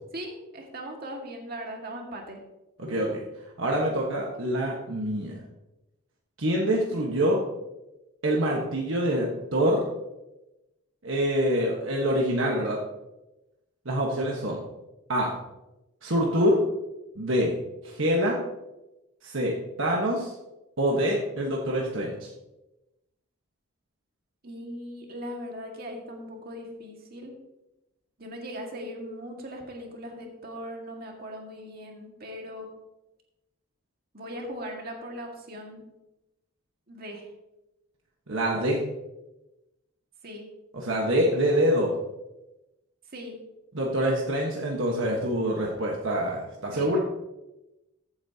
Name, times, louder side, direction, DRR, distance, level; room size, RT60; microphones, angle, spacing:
voice 1, 0.1-2.4 24.4-27.3 28.2-32.7 34.1-35.9 36.9-37.3 40.2-40.5 43.1-43.4 46.7-47.0, equal, 45° right, 1 dB, 1.9 m, -39 dB
voice 2, 2.8-3.2 3.6-5.3 6.4-7.4 8.2-9.8 11.0-12.8 13.8-14.6 15.1-15.3 16.0-16.6 17.2-17.5 17.8-18.4 19.2-20.3 20.8-22.3 38.3-38.8 40.7-41.9 43.7-47.0, equal, 65° right, -2 dB, 1.3 m, -25 dB
14.5 x 8.5 x 2.8 m, 0.97 s
head